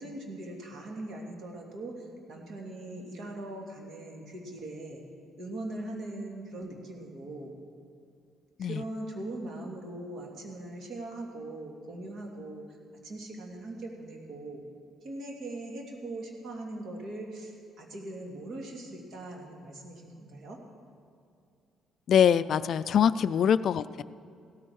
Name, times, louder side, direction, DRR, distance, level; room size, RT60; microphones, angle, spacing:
voice 1, 0.0-1.9 2.3-5.0 5.4-7.5 8.6-12.6 13.0-14.6 15.0-20.6, right 2 dB, 55° right, 0 dB, 2.5 m, -40 dB
voice 2, 22.1-24.0, left 8 dB, 55° left, 16 dB, 0.3 m, -24 dB
16.5 x 13.0 x 4.7 m, 2.5 s
cardioid pair, 140°, 0 cm